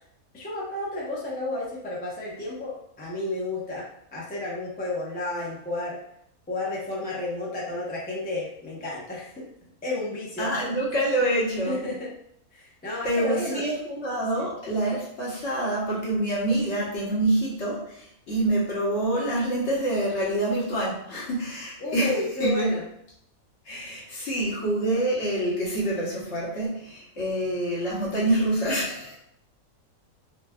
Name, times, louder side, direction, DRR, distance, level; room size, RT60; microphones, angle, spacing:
voice 1, 0.3-3.8 4.1-6.0 6.5-9.5 9.8-10.5 11.7-12.1 12.5-13.6 14.3-14.5 21.8-22.8, left 2 dB, 15° left, -6 dB, 0.4 m, -31 dB
voice 2, 10.4-11.9 13.0-22.7 23.6-29.2, right 1 dB, 55° left, -6 dB, 1.2 m, -26 dB
4.0 x 2.3 x 2.2 m, 0.73 s
omnidirectional pair, 1.5 m